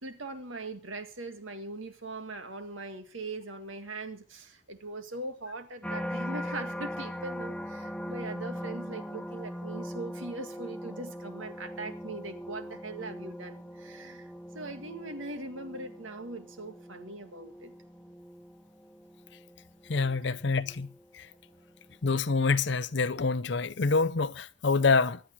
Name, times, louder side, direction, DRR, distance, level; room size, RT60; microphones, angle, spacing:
voice 1, 0.0-17.7, right 2 dB, 90° right, 2.0 m, -41 dB
sound 1, 5.8-21.0 21.5-22.0, equal, 5° left, 0.6 m, -40 dB
voice 2, 19.9-20.9 21.1-21.3 22.0-25.2, left 4 dB, 65° left, 0.7 m, -26 dB
24.0 x 8.9 x 4.5 m
head